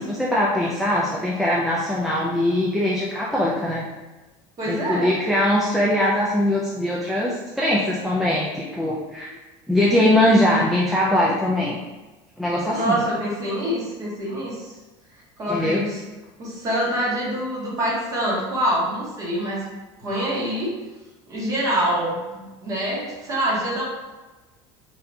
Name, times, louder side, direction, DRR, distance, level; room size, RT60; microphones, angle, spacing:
voice 1, 0.0-3.8 4.7-9.3 9.7-11.8 12.4-13.0 15.5-15.8, left 1 dB, ahead, -5 dB, 0.3 m, -21 dB
voice 2, 4.6-5.1 12.7-14.8 15.4-16.0 16.4-19.6 20.0-20.7 21.3-23.8, equal, 25° right, -5 dB, 1.2 m, -25 dB
4.0 x 3.3 x 2.7 m, 1.2 s
cardioid pair, 170°, 13 cm